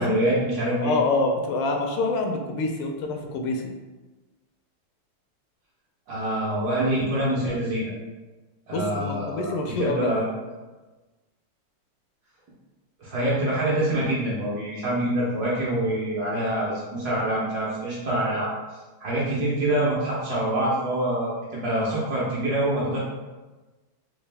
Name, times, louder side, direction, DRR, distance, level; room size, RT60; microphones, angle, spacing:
voice 1, 0.0-0.9 6.1-7.9 8.7-10.3 13.0-18.5 19.0-23.0, right 1 dB, 60° right, -6 dB, 1.1 m, -25 dB
voice 2, 0.8-3.6 8.7-10.2, left 3 dB, 85° left, 3 dB, 1.5 m, -26 dB
4.0 x 2.4 x 3.3 m, 1.2 s
omnidirectional pair, 2.4 m